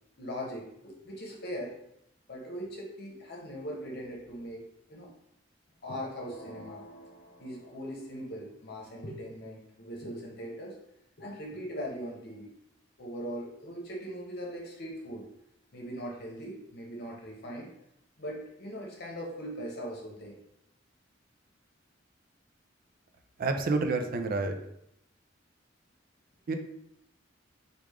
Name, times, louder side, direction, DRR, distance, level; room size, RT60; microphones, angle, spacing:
voice 1, 0.2-1.7 2.3-5.1 5.8-6.8 7.4-10.8 11.2-12.5 13.0-15.3 15.7-17.7 18.2-20.4, equal, 55° left, -2 dB, 0.9 m, -40 dB
sound 1, 6.2-8.2, equal, 25° left, 0.4 m, -50 dB
voice 2, 23.4-24.6 26.5-26.6, right 3 dB, 50° right, 6 dB, 0.4 m, -28 dB
3.3 x 2.4 x 3.5 m, 0.78 s
head